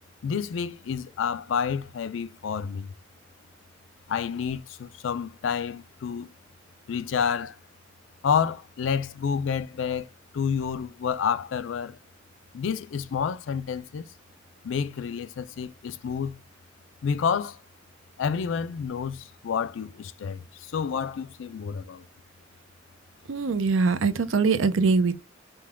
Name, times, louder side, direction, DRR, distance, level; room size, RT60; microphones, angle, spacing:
voice 1, 0.2-2.9 4.1-6.3 6.9-7.6 8.2-10.1 10.3-12.0 12.5-14.1 14.6-16.4 17.0-17.6 18.2-22.0, left 6 dB, 70° left, 0.4 m, -29 dB
voice 2, 23.3-25.2, right 4 dB, 80° right, 0.5 m, -22 dB
5.3 x 2.2 x 3.4 m
head